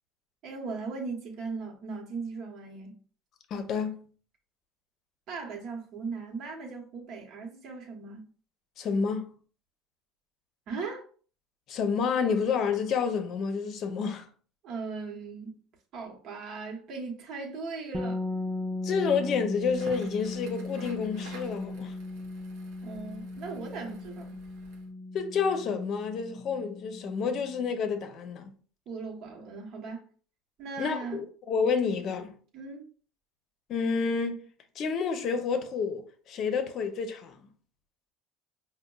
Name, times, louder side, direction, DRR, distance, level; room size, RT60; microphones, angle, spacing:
voice 1, 0.4-2.9 5.3-8.3 10.7-11.0 14.6-15.6 15.9-18.2 22.8-24.4 28.9-30.1 30.6-31.2 32.5-32.9, right 4 dB, 55° right, 1.0 m, -38 dB
voice 2, 3.5-4.1 8.8-9.3 11.7-14.3 18.8-22.0 25.1-28.5 30.8-32.4 33.7-34.4 34.8-37.5, left 5 dB, 50° left, 0.6 m, -29 dB
sound 1, 17.9-27.7, left 2 dB, 5° right, 0.5 m, -37 dB
Crackle, 19.6-24.9, right 3 dB, 75° right, 0.7 m, -51 dB
5.1 x 2.1 x 2.2 m
supercardioid pair, 115°, 0 cm